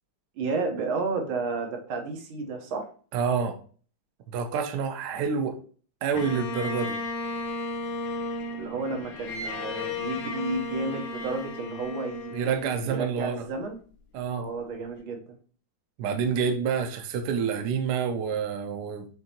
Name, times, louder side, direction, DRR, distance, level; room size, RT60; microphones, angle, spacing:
voice 1, 0.4-2.9 8.5-12.3 12.9-13.8 14.4-15.2, right 3 dB, 85° right, 1.7 m, -32 dB
voice 2, 3.1-3.6 4.3-5.6 6.0-7.0 12.3-13.4 14.1-14.5 16.0-19.1, right 6 dB, 65° right, 1.1 m, -28 dB
Bowed string instrument, 6.1-13.4, left 2 dB, 85° left, 1.5 m, -34 dB
6.4 x 2.7 x 2.8 m
omnidirectional pair, 2.2 m